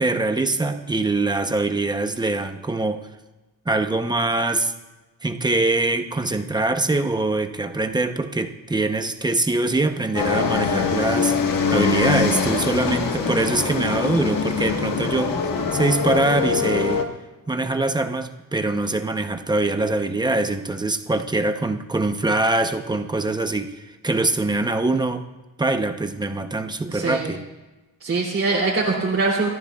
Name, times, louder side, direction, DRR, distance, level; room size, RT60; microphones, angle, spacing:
voice 1, 0.0-3.1 3.7-4.7 5.2-11.4 11.7-15.4 15.7-17.1 17.5-23.8 24.0-25.3 25.6-27.5, right 2 dB, 10° right, 7 dB, 0.8 m, -23 dB
sound 1, 10.1-17.0, left 5 dB, 65° left, 1.5 m, -23 dB
voice 2, 26.9-27.3 28.0-29.5, right 3 dB, 40° right, -5 dB, 2.9 m, -22 dB
29.5 x 14.0 x 2.4 m, 1.1 s
wide cardioid pair, 150°, 35 cm